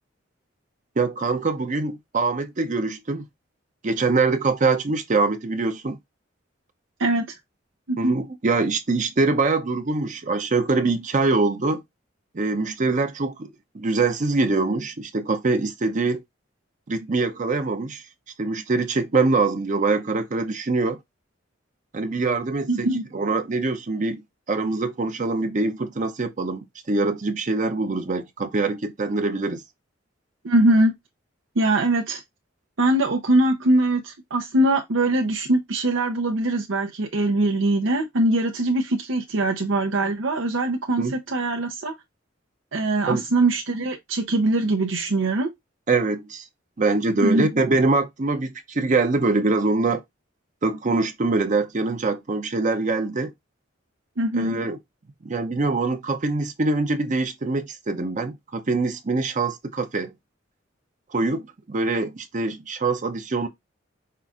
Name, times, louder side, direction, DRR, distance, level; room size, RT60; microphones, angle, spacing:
voice 1, 1.0-3.2 3.8-6.0 8.0-11.8 12.3-13.5 13.7-16.2 16.9-18.0 18.4-21.0 21.9-22.9 23.1-29.6 41.0-41.1 43.1-43.2 45.9-46.5 46.8-50.0 50.6-53.3 54.3-54.8 55.2-60.1 61.1-63.5, right 3 dB, 40° right, 0.6 m, -24 dB
voice 2, 22.7-23.0 30.4-31.0 31.6-32.2 32.8-41.9 42.7-45.5 47.2-47.5 54.2-54.6, right 2 dB, 85° right, 0.8 m, -22 dB
5.6 x 2.5 x 3.5 m
head